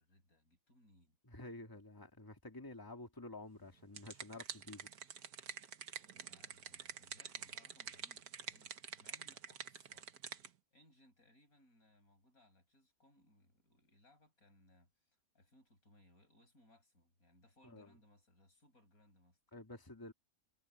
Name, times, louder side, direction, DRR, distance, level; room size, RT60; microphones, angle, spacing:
voice 1, 0.0-1.2 6.1-10.1 10.7-19.4, left 1 dB, 70° left, 8.0 m, -68 dB
voice 2, 1.3-4.9 17.6-17.9 19.5-20.1, left 2 dB, 15° left, 2.2 m, -51 dB
sound 1, 3.6-10.5, right 7 dB, 80° right, 1.7 m, -48 dB
omnidirectional pair, 1.6 m